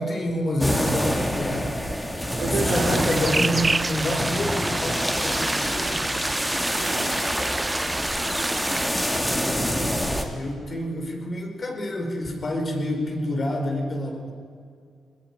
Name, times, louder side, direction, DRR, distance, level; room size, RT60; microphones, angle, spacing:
voice 1, 0.0-1.8 2.5-6.2 9.7-14.3, left 1 dB, 45° left, 3 dB, 5.0 m, -28 dB
sound 1, 0.6-10.2, equal, 5° left, 3.1 m, -26 dB
voice 2, 2.3-3.3 6.7-7.5 8.2-8.6 8.9-10.1, right 5 dB, 70° right, 4 dB, 3.4 m, -34 dB
sound 2, 2.7-8.9, right 2 dB, 20° right, 0.5 m, -29 dB
21.0 x 20.5 x 9.2 m, 2.3 s
cardioid pair, 80°, 0 cm